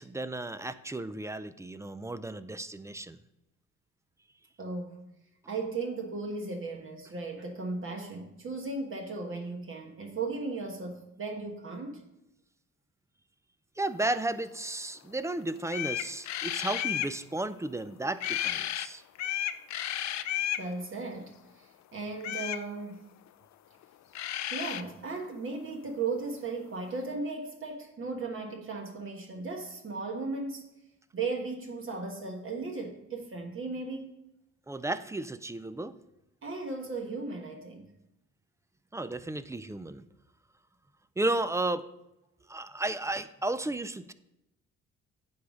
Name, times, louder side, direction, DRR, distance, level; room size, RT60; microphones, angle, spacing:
voice 1, 0.0-3.2 13.8-19.0 34.7-35.9 38.9-40.0 41.2-41.8 42.5-44.1, right 2 dB, 10° right, 0.3 m, -33 dB
voice 2, 4.6-5.0 5.5-12.0 20.6-23.0 24.5-30.7 31.1-34.1 36.4-37.9, right 3 dB, 45° right, 1.2 m, -36 dB
sound 1, 15.3-15.4 15.7-17.1 18.2-18.9 19.2-20.7 22.2-22.6 23.8-23.9 24.1-24.8, left 11 dB, 65° left, 0.5 m, -32 dB
9.4 x 3.5 x 6.2 m
cardioid pair, 90°, 30 cm